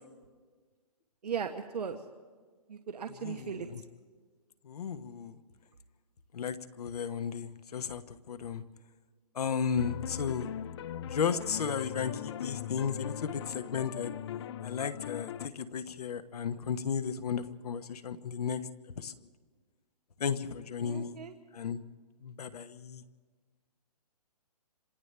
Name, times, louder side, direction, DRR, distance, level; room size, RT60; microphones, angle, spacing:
voice 1, 1.2-2.0 2.7-3.7 20.8-21.3, right 7 dB, 80° right, 5 dB, 1.2 m, -37 dB
voice 2, 3.2-3.8 4.6-5.3 6.3-8.6 9.3-10.5 11.1-14.1 14.6-18.6 19.0-19.1 20.2-21.2 21.5-21.8 22.2-23.0, left 7 dB, 70° left, 9 dB, 1.2 m, -34 dB
sound 1, 9.8-15.5, left 10 dB, 45° left, 0.6 m, -40 dB
29.5 x 26.5 x 3.4 m, 1.5 s
hypercardioid pair, 145°, 20 cm